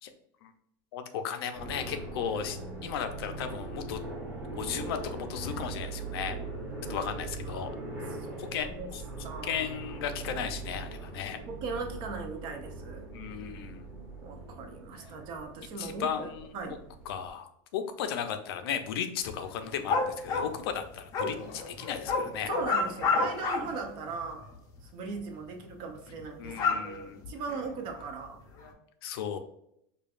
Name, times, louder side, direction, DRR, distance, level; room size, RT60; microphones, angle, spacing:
voice 1, 0.9-4.0 4.6-6.4 6.9-7.7 8.4-9.0 9.4-11.4 13.1-13.9 15.8-16.8 17.1-22.5 26.4-27.3 29.0-29.4, left 8 dB, 80° left, 8 dB, 0.5 m, -35 dB
sound 1, 1.5-17.3, right 3 dB, 5° right, 1.0 m, -41 dB
voice 2, 7.4-8.9 9.2-9.7 11.5-13.1 14.2-16.8 22.5-24.5 24.8-28.4, right 4 dB, 40° right, 4 dB, 0.6 m, -39 dB
sound 2, 19.2-23.8 24.1-24.6 25.2-25.3 25.6-25.7 26.1-28.0 28.6-28.7, left 4 dB, 30° left, 0.5 m, -30 dB
5.0 x 2.3 x 2.4 m, 0.74 s
supercardioid pair, 165°, 13 cm